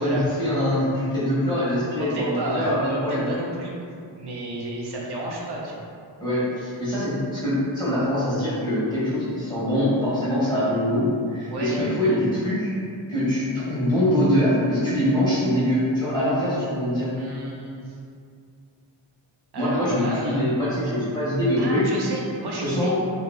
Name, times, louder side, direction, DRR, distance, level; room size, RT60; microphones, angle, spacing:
voice 1, 0.0-3.3 6.2-12.7 13.1-17.1 19.6-21.9 22.5-22.9, left 1 dB, 10° left, -11 dB, 1.4 m, -23 dB
voice 2, 2.0-3.7 4.1-5.8 11.5-11.8 17.1-18.0 19.5-20.5 20.8-20.9 21.6-22.9, right 1 dB, 60° right, -3 dB, 0.6 m, -32 dB
2.8 x 2.8 x 2.3 m, 2.3 s
wide cardioid pair, 85°, 45 cm